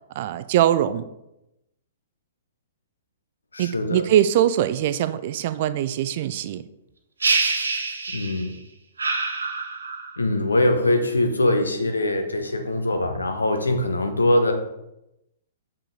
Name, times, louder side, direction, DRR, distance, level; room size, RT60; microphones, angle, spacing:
voice 1, 0.2-1.1 3.6-6.6, right 11 dB, 45° right, 14 dB, 0.4 m, -22 dB
voice 2, 3.5-4.0 8.1-8.5 10.2-14.5, left 1 dB, 75° left, 6 dB, 1.1 m, -22 dB
sound 1, 7.2-8.5 9.0-10.2, right 4 dB, 70° right, 0.9 m, -25 dB
7.1 x 5.5 x 3.9 m, 0.88 s
figure-of-eight pair, 110°, 0 cm